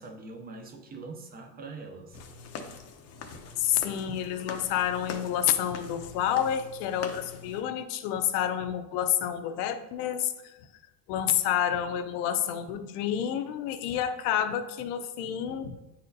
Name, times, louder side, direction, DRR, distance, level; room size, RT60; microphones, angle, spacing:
voice 1, 0.0-2.2, right 3 dB, 20° right, 4 dB, 0.5 m, -43 dB
sound 1, 2.1-7.6, left 5 dB, 35° left, 0.6 m, -43 dB
voice 2, 3.6-10.6 11.1-15.8, left 10 dB, 75° left, 8 dB, 0.8 m, -29 dB
9.3 x 4.2 x 2.6 m, 0.95 s
cardioid pair, 150°, 47 cm